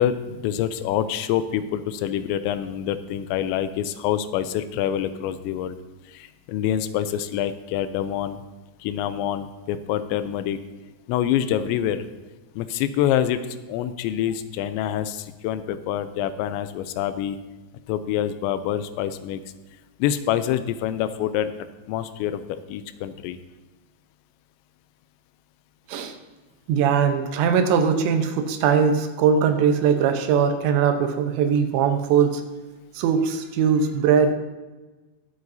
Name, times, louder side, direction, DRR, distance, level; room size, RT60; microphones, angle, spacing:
voice 1, 0.0-5.8 6.1-8.4 8.8-10.6 11.1-12.1 12.6-13.4 13.7-17.4 17.9-19.4 20.0-21.5 21.9-23.4, left 10 dB, 90° left, 11 dB, 2.9 m, -26 dB
voice 2, 26.7-32.4 33.0-34.3, right 7 dB, 85° right, 6 dB, 3.2 m, -20 dB
21.0 x 7.9 x 2.7 m, 1.2 s
omnidirectional pair, 5.1 m